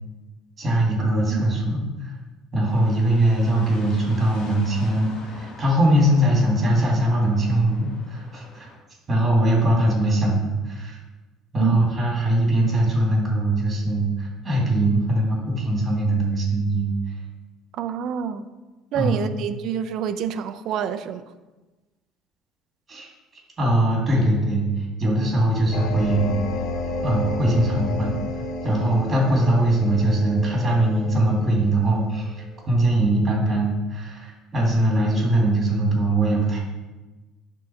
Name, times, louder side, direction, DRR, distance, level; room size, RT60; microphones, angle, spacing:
voice 1, 0.6-2.1 2.5-8.7 9.1-11.0 11.5-16.9 18.9-19.2 22.9-23.1 23.6-26.3 27.0-28.2 28.6-36.6, right 1 dB, 15° right, -2 dB, 2.3 m, -21 dB
sound 1, 2.7-8.8, left 2 dB, 65° left, 1.4 m, -44 dB
voice 2, 17.8-18.4 18.9-21.2, right 8 dB, 45° right, 9 dB, 0.5 m, -27 dB
sound 2, 25.7-32.2, left 2 dB, 35° left, 0.5 m, -31 dB
9.2 x 3.8 x 5.7 m, 1.2 s
cardioid pair, 180°, 0 cm